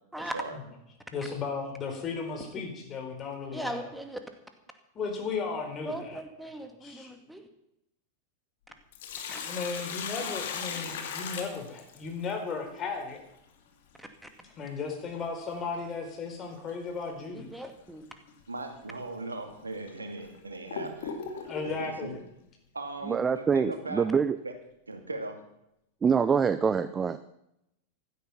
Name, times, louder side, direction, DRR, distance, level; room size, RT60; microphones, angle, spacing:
voice 1, 1.1-3.9 4.9-6.2 6.8-7.1 9.4-13.2 14.4-17.5 21.4-22.2, left 4 dB, 30° left, 3 dB, 4.4 m, -35 dB
voice 2, 3.5-4.2 5.8-7.4 9.3-9.4 14.0-14.3 17.3-18.1, right 1 dB, 5° right, 6 dB, 2.1 m, -39 dB
Sink (filling or washing), 8.7-12.3 14.7-14.8 16.7-16.9 17.4-17.5 18.3-18.4 19.1-19.2 19.9-21.8, left 6 dB, 55° left, 2.3 m, -37 dB
voice 3, 18.5-22.2 22.7-24.1 24.4-24.5 24.9-25.4, right 2 dB, 80° right, 5 dB, 2.3 m, -39 dB
voice 4, 23.1-24.4 26.0-27.2, right 6 dB, 20° right, 13 dB, 0.6 m, -25 dB
15.5 x 12.5 x 5.9 m, 0.82 s
figure-of-eight pair, 90°, 0 cm